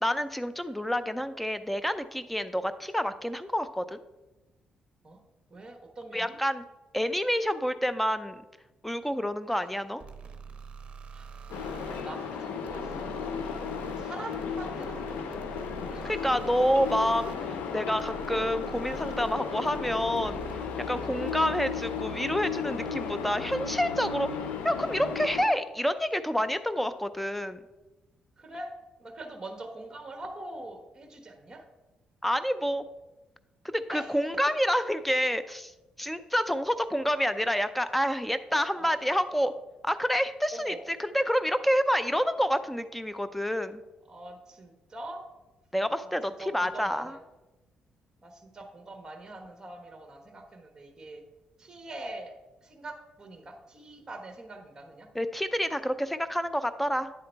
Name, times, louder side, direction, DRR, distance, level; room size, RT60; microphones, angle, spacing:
voice 1, 0.0-4.0 6.1-6.6 6.9-8.4 8.8-10.0 16.0-20.4 20.9-24.3 24.6-27.6 32.2-32.8 33.6-35.7 36.0-39.5 39.8-43.8 45.7-47.1 55.1-57.1, equal, 5° left, 12 dB, 0.4 m, -28 dB
voice 2, 5.5-6.4 9.5-9.6 11.1-11.3 11.8-13.5 13.8-15.4 15.9-16.1 21.1-21.3 25.5-25.6 28.4-28.7 29.0-31.6 33.9-34.2 38.5-38.9 40.5-40.8 44.1-45.2 46.0-47.2 48.2-51.2 51.6-52.3 52.6-55.1, right 2 dB, 25° right, 4 dB, 1.2 m, -44 dB
sound 1, 10.0-20.7, right 5 dB, 50° right, 0.7 m, -46 dB
sound 2, 11.5-25.5, left 6 dB, 90° left, 0.5 m, -35 dB
9.4 x 3.8 x 4.5 m, 1.1 s
cardioid pair, 90°, 3 cm